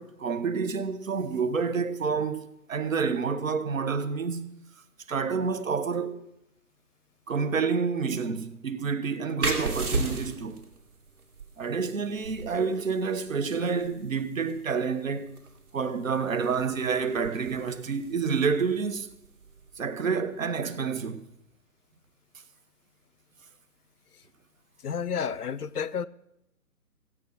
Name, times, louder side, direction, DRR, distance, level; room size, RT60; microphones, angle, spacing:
voice 1, 0.0-4.6 5.1-6.2 7.3-10.6 11.6-15.3 15.7-19.1 19.8-21.2, right 5 dB, 55° right, 1.2 m, -28 dB
sound 1, 9.4-20.7, right 2 dB, 75° right, 3.0 m, -37 dB
voice 2, 24.8-26.1, left 7 dB, 70° left, 0.7 m, -31 dB
16.0 x 8.6 x 6.4 m
figure-of-eight pair, 150°, 47 cm